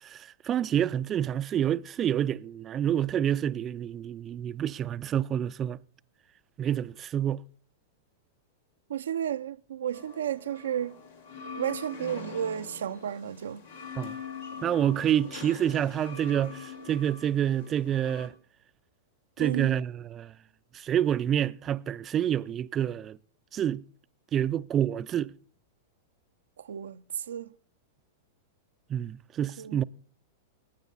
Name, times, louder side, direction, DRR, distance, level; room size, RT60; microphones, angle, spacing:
voice 1, 0.0-5.8 6.6-7.4 14.0-14.2 14.6-18.3 19.4-20.3 20.7-23.2 23.5-23.8 24.3-25.3 28.9-29.8, right 10 dB, 30° right, 0.5 m, -28 dB
voice 2, 8.9-11.0 11.6-13.6 19.4-19.8 26.6-27.5 29.6-29.8, right 9 dB, 80° right, 0.5 m, -33 dB
sound 1, 9.9-18.3, left 5 dB, 85° left, 3.7 m, -43 dB
19.0 x 9.0 x 3.9 m
hypercardioid pair, 110°, 0 cm